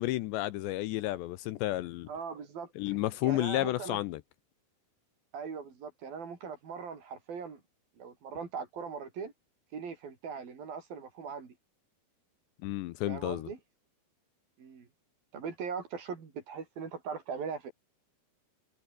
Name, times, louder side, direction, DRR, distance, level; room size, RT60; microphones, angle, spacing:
voice 1, 0.0-2.1 2.8-4.2 12.6-13.5, left 16 dB, 80° left, 2.9 m, -31 dB
voice 2, 2.1-3.0 3.2-4.0 5.3-7.6 8.0-9.3 9.7-11.6 13.1-13.6 14.6-14.9 15.3-17.7, right 6 dB, 50° right, 5.5 m, -40 dB
omnidirectional pair, 5.4 m